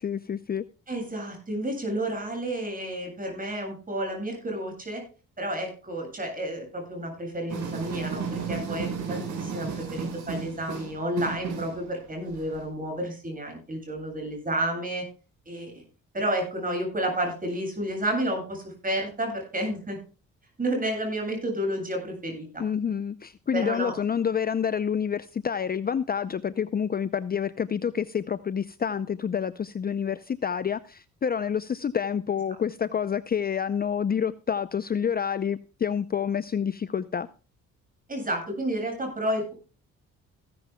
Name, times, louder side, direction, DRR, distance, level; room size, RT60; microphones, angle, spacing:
voice 1, 0.0-0.6 22.6-37.3, left 7 dB, 30° left, 14 dB, 0.6 m, -28 dB
voice 2, 0.9-5.0 5.4-15.0 15.5-15.8 16.1-20.0 20.6-22.6 23.5-23.9 38.1-39.5, right 1 dB, 30° right, 3 dB, 7.7 m, -31 dB
sound 1, 7.5-12.6, right 5 dB, 70° right, 5.2 m, -33 dB
16.0 x 13.0 x 2.3 m, 0.35 s
cardioid pair, 90°, 30 cm